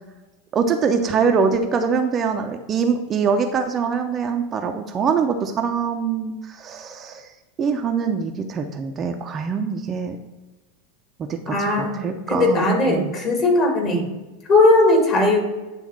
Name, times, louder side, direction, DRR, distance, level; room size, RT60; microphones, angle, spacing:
voice 1, 0.5-7.3 7.6-10.2 11.2-13.1 13.8-14.1, right 6 dB, 25° right, 5 dB, 0.6 m, -23 dB
voice 2, 11.5-12.0 12.3-14.1 14.5-15.4, left 2 dB, 35° left, 1 dB, 1.9 m, -18 dB
9.2 x 3.5 x 4.4 m, 1.1 s
figure-of-eight pair, 85°, 0 cm